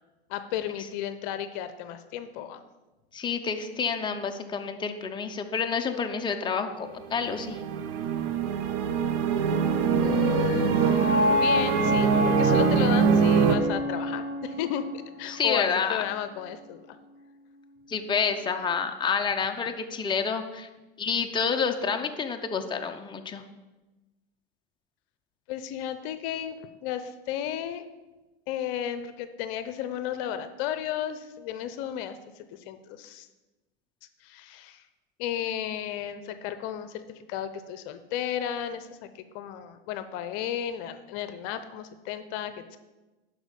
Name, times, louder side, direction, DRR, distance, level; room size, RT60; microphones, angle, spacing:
voice 1, 0.3-2.6 10.0-10.9 11.3-17.0 25.5-27.8 28.5-33.3 34.2-34.8 35.2-42.8, left 10 dB, 55° left, 11 dB, 0.8 m, -34 dB
voice 2, 3.1-7.6 15.3-16.0 17.9-20.7 21.0-23.4, left 6 dB, 15° left, 5 dB, 0.7 m, -28 dB
sound 1, 7.0-13.6, right 7 dB, 55° right, 1.0 m, -24 dB
sound 2, 9.4-15.5, left 1 dB, 30° right, 2.7 m, -28 dB
11.5 x 4.9 x 5.3 m, 1.1 s
hypercardioid pair, 105°, 30 cm